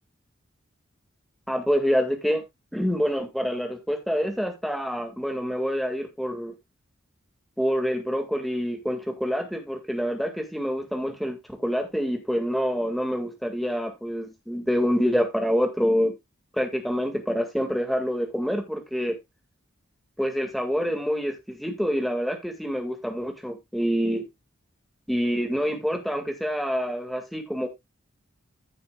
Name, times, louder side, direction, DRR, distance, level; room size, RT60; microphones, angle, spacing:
voice 1, 1.5-2.4 2.7-6.5 7.6-16.1 16.5-19.2 20.2-24.2 25.1-27.7, equal, ahead, 1.9 m, -26 dB
15.0 x 6.9 x 2.3 m
head